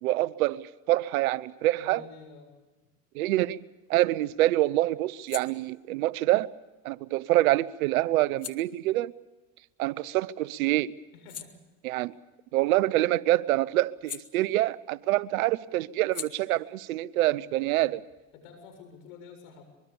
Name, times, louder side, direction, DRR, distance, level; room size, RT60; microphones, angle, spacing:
voice 1, 0.0-2.0 3.1-3.6 3.9-6.5 6.8-9.1 9.8-10.9 11.8-12.1 12.5-18.0, right 16 dB, 90° right, 0.9 m, -26 dB
voice 2, 1.8-2.5 11.1-11.5 17.6-17.9 18.3-19.6, left 5 dB, 80° left, 7.4 m, -49 dB
sound 1, 3.5-10.4 10.8-15.0 15.3-18.7, left 8 dB, 35° left, 1.9 m, -48 dB
24.0 x 23.0 x 7.0 m
supercardioid pair, 85°, 40 cm